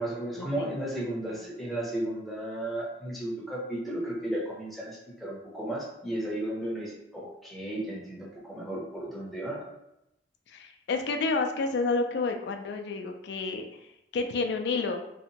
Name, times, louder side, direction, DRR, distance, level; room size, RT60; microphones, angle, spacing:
voice 1, 0.0-9.7, right 1 dB, ahead, -5 dB, 0.6 m, -34 dB
voice 2, 10.5-13.7 14.1-15.0, left 3 dB, 65° left, 5 dB, 0.3 m, -29 dB
2.7 x 2.1 x 2.7 m, 0.84 s
head